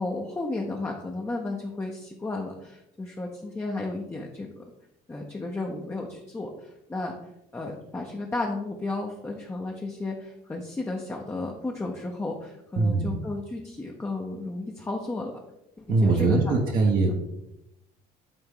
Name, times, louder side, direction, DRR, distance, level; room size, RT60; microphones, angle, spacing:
voice 1, 0.0-4.6 5.1-7.1 7.5-15.3 15.8-16.6 17.0-17.1, left 2 dB, 15° left, 0 dB, 0.8 m, -33 dB
voice 2, 12.8-13.2 15.9-17.2, right 3 dB, 60° right, 0 dB, 1.2 m, -22 dB
8.9 x 3.5 x 3.9 m, 0.84 s
cardioid pair, 110°, 17 cm